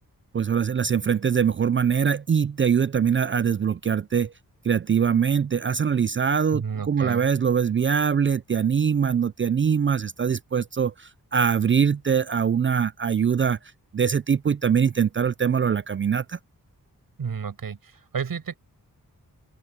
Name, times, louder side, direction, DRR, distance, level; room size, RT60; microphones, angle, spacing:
voice 1, 0.3-4.3 4.6-13.6 13.9-16.4, right 7 dB, 35° right, 0.4 m, -23 dB
voice 2, 6.5-7.3 17.2-18.6, right 6 dB, 75° right, 7.4 m, -31 dB
open air
wide cardioid pair, 100°, 35 cm